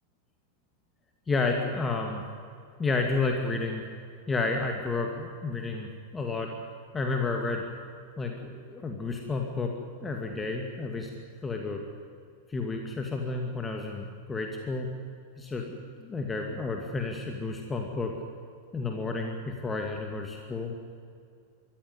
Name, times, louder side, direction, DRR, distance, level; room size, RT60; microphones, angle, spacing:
voice 1, 1.3-2.2 2.8-3.8 4.3-6.5 6.9-7.6 8.2-9.7 10.0-11.1 11.4-11.8 12.5-14.9 15.4-18.1 18.7-20.7, left 3 dB, 15° left, 2 dB, 2.4 m, -31 dB
24.5 x 14.5 x 9.7 m, 2.3 s
figure-of-eight pair, 90°, 0 cm